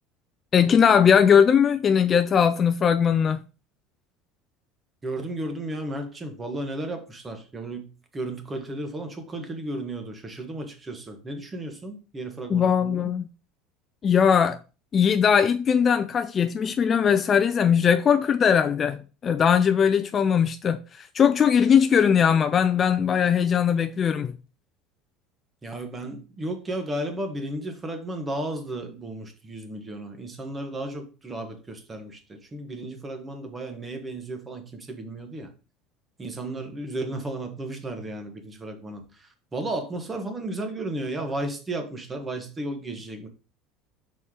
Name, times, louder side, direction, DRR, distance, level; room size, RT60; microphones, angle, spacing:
voice 1, 0.5-3.4 12.5-13.3 14.0-14.6 14.9-24.3, left 7 dB, 30° left, 0.4 m, -20 dB
voice 2, 5.0-7.9 8.1-13.1 25.6-35.5 36.2-43.3, right 1 dB, 15° right, 1.3 m, -34 dB
5.5 x 4.3 x 4.8 m
cardioid pair, 140°, 0 cm